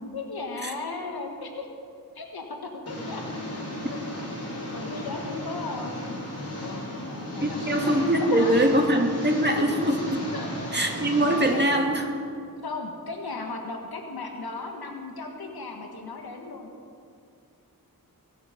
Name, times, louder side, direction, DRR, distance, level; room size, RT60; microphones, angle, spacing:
voice 1, 0.1-1.7 2.2-3.2 3.5-3.6 3.9-4.0 4.7-6.2 6.6-7.9 8.2-8.6 10.3-10.5 11.5-11.7 12.6-16.7, left 3 dB, 85° left, 3 dB, 1.8 m, -36 dB
Engine, 2.9-11.5, left 1 dB, 40° left, 4.3 m, -34 dB
voice 2, 7.4-10.2 10.7-12.2, right 1 dB, 30° right, 2 dB, 2.3 m, -23 dB
23.5 x 8.6 x 5.3 m, 2.4 s
wide cardioid pair, 60°, 36 cm